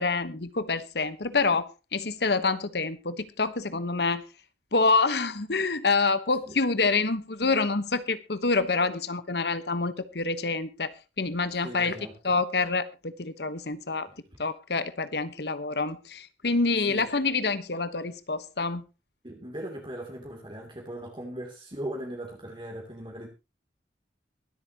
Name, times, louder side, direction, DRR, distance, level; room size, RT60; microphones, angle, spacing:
voice 1, 0.0-4.2 4.7-12.0 12.2-14.1 14.4-18.8, left 3 dB, 65° left, 1.2 m, -27 dB
voice 2, 11.6-12.3 14.1-14.2 16.9-17.1 19.2-23.3, right 1 dB, 30° right, 2.8 m, -39 dB
23.0 x 8.4 x 2.9 m
head